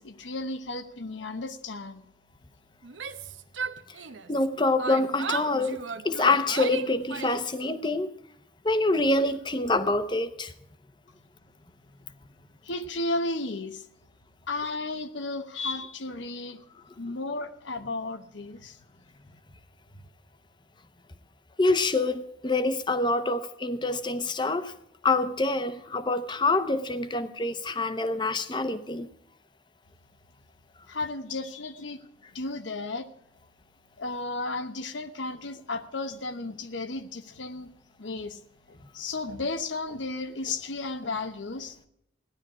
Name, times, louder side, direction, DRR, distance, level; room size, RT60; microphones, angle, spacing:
voice 1, 0.0-2.0 12.6-13.8 14.5-16.6 17.0-18.8 30.9-32.0 32.3-33.1 34.0-37.7 38.0-38.4 38.7-41.9, left 2 dB, 90° left, 1.1 m, -34 dB
Yell, 2.8-4.5 4.8-7.6, right 5 dB, 90° right, 0.8 m, -36 dB
voice 2, 4.3-8.1 8.6-10.5 21.6-24.7 25.0-29.1, left 2 dB, 25° left, 0.8 m, -26 dB
15.5 x 11.0 x 4.9 m
head